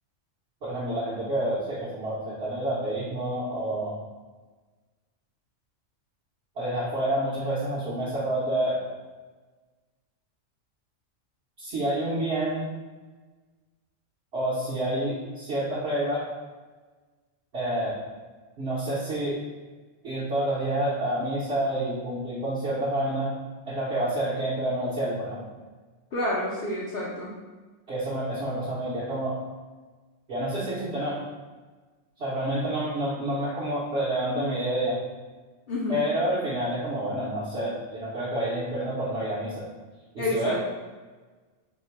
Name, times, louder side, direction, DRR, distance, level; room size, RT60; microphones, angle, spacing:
voice 1, 0.6-3.9 6.6-8.8 11.6-12.7 14.3-16.3 17.5-18.0 18.6-19.4 20.0-23.3 23.7-25.4 27.9-29.4 30.3-31.2 32.2-35.0 35.9-39.7 40.1-40.6, right 1 dB, 55° right, -10 dB, 1.1 m, -28 dB
voice 2, 26.1-27.4 35.7-36.1 40.2-40.6, left 1 dB, 55° left, -6 dB, 0.8 m, -29 dB
4.3 x 2.2 x 4.4 m, 1.3 s
omnidirectional pair, 1.3 m